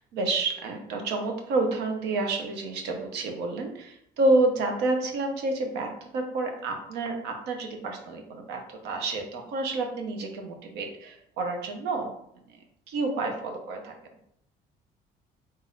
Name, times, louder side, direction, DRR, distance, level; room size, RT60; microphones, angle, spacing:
voice 1, 0.1-12.1 12.9-13.9, right 2 dB, 85° right, 3 dB, 0.9 m, -29 dB
3.9 x 2.6 x 3.9 m, 0.73 s
cardioid pair, 110°, 17 cm